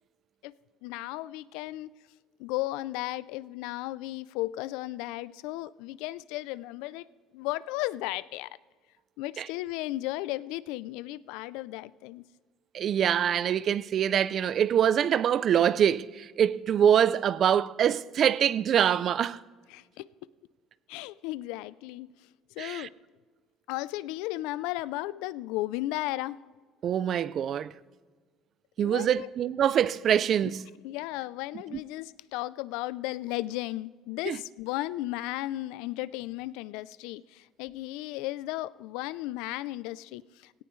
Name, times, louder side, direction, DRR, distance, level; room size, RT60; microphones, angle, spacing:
voice 1, 0.8-1.9 2.4-7.1 7.3-8.5 9.2-12.2 19.7-20.1 20.9-22.1 22.6-22.9 23.7-26.4 28.8-29.3 30.8-40.6, left 17 dB, 80° left, 0.4 m, -35 dB
voice 2, 12.7-19.4 22.6-22.9 26.8-27.7 28.8-30.6 34.3-34.4, right 9 dB, 35° right, 0.4 m, -24 dB
17.5 x 17.5 x 3.2 m
cardioid pair, 165°, 0 cm